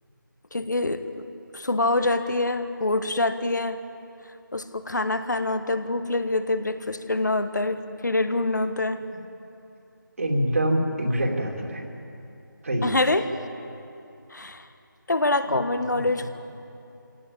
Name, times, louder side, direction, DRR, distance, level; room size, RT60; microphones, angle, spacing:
voice 1, 0.5-1.2 1.5-3.8 4.5-9.0 12.8-13.3 14.3-14.7 15.1-16.3, left 2 dB, 60° left, 9 dB, 1.5 m, -25 dB
voice 2, 10.2-11.8 12.6-12.9 15.9-16.3, equal, 40° right, 2 dB, 2.9 m, -25 dB
23.5 x 17.5 x 8.8 m, 2.7 s
figure-of-eight pair, 165°, 11 cm